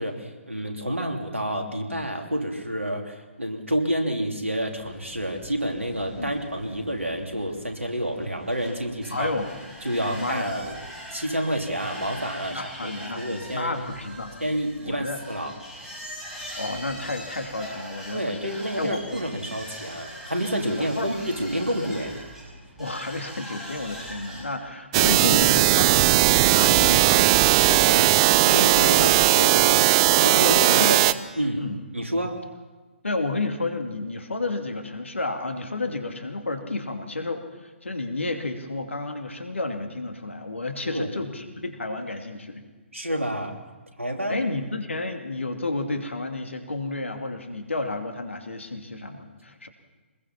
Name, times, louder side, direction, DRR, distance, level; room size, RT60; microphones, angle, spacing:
voice 1, 0.0-9.3 9.8-10.8 11.1-13.8 14.4-15.5 18.1-22.1 28.4-29.9 30.2-31.0 31.4-31.7 31.9-32.4 40.8-41.1 42.9-43.5 44.0-44.5, equal, 85° right, 3 dB, 2.9 m, -29 dB
sound 1, 4.8-24.4, equal, 5° right, 5.9 m, -42 dB
voice 2, 9.1-9.5 10.1-10.5 12.5-14.3 14.8-15.2 16.6-19.2 20.7-21.1 22.8-28.5 28.8-29.4 29.8-29.9 30.7-31.0 31.6-31.8 33.0-42.6 44.3-49.7, left 2 dB, 75° left, 5 dB, 2.6 m, -31 dB
sound 2, 24.9-31.1, right 15 dB, 25° right, 0.6 m, -18 dB
24.0 x 21.0 x 5.9 m, 1.3 s
figure-of-eight pair, 130°, 7 cm